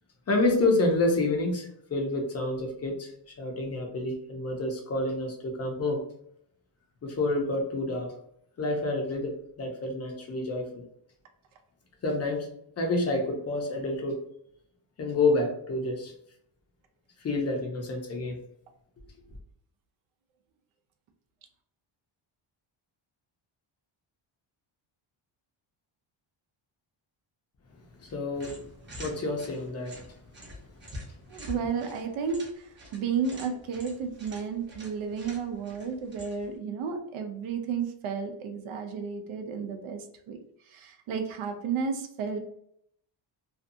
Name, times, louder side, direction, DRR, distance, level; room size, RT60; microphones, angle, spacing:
voice 1, 0.3-6.0 7.0-8.1 8.6-10.7 12.0-12.5 12.8-14.2 15.0-16.1 17.2-18.4 27.9-28.7 29.0-30.2 31.1-31.2, left 2 dB, 30° left, 1 dB, 0.6 m, -28 dB
sound 1, 28.3-36.6, left 1 dB, 20° right, 0.7 m, -47 dB
voice 2, 31.3-40.4 40.7-42.4, right 6 dB, 75° right, 5 dB, 0.6 m, -32 dB
2.6 x 2.3 x 2.6 m, 0.71 s
cardioid pair, 145°, 50 cm